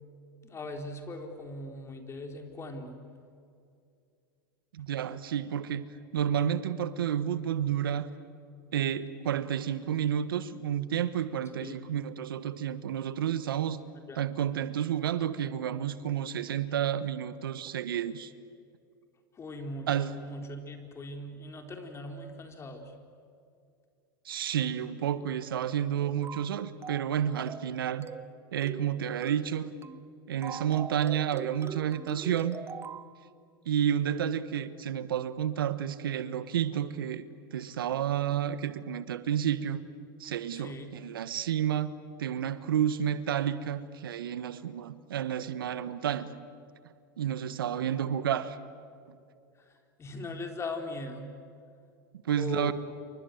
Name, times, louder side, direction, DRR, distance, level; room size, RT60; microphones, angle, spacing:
voice 1, 0.4-3.0 11.6-11.8 14.1-14.2 19.3-22.9 40.5-40.9 49.6-51.3 52.3-52.7, left 2 dB, 25° left, 4 dB, 4.2 m, -40 dB
voice 2, 4.7-5.9 6.1-8.1 8.7-13.8 14.1-18.3 19.9-20.2 24.2-28.1 28.5-29.7 30.3-32.6 33.6-37.2 37.5-39.8 40.2-41.9 42.2-46.4 47.2-48.6 49.1-49.2 52.2-52.7, right 9 dB, 80° right, 13 dB, 1.3 m, -30 dB
sound 1, 26.2-26.5 26.8-27.1 27.4-27.7 28.0-28.3 28.6-28.9 29.2-29.5 29.8-30.1 30.4-33.1, right 6 dB, 20° right, 1.0 m, -42 dB
28.5 x 24.5 x 8.0 m, 2.4 s
hypercardioid pair, 100°, 11 cm